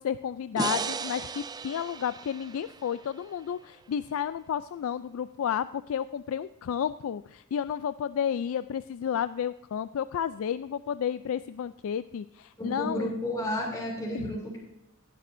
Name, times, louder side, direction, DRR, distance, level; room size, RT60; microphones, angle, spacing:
voice 1, 0.0-13.1 14.1-14.3, left 8 dB, 65° left, 14 dB, 0.3 m, -32 dB
sound 1, 0.6-3.8, right 5 dB, 20° right, 0.3 m, -36 dB
voice 2, 12.6-14.6, left 1 dB, 15° left, -3 dB, 2.9 m, -32 dB
16.0 x 11.0 x 2.6 m, 0.92 s
head